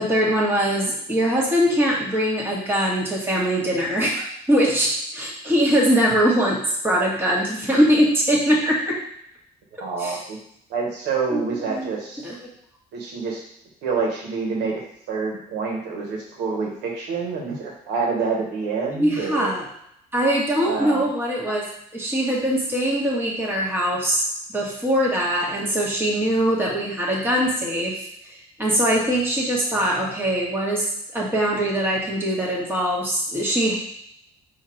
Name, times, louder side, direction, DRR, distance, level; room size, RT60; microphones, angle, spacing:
voice 1, 0.0-6.6 6.8-9.0 10.0-10.2 11.3-11.9 12.2-12.3 18.9-19.6 20.1-21.6 21.9-24.3 24.5-28.3 28.6-30.9 31.1-33.8, equal, 15° right, -4 dB, 1.5 m, -22 dB
voice 2, 9.8-10.4 10.7-12.2 12.9-13.4 13.8-14.8 15.1-19.5 20.6-21.1, right 4 dB, 90° right, -1 dB, 1.2 m, -27 dB
4.2 x 2.7 x 4.5 m, 0.74 s
cardioid pair, 110°, 17 cm